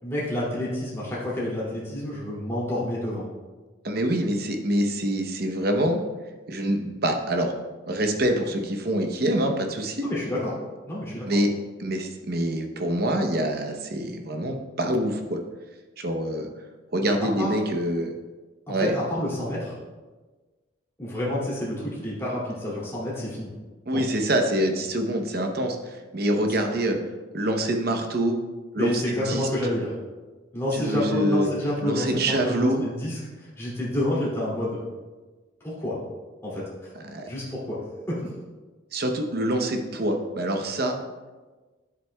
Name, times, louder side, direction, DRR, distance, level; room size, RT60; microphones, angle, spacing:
voice 1, 0.0-3.3 10.0-10.6 10.8-11.3 17.0-17.5 18.7-19.8 21.0-23.5 23.9-24.0 26.5-26.6 28.8-29.9 30.5-34.8 35.6-36.0 36.4-36.9 37.3-37.8 38.1-38.3, left 1 dB, 15° left, -8 dB, 2.5 m, -29 dB
voice 2, 3.8-6.0 6.5-7.5 7.9-10.1 11.3-11.5 11.8-15.4 16.0-16.5 16.9-18.1 18.7-18.9 23.9-25.8 26.1-27.0 27.3-28.4 28.7-29.5 30.7-31.5 31.8-32.8 37.1-37.2 38.9-41.0, right 1 dB, 50° right, 4 dB, 0.8 m, -25 dB
10.0 x 7.8 x 2.3 m, 1.3 s
head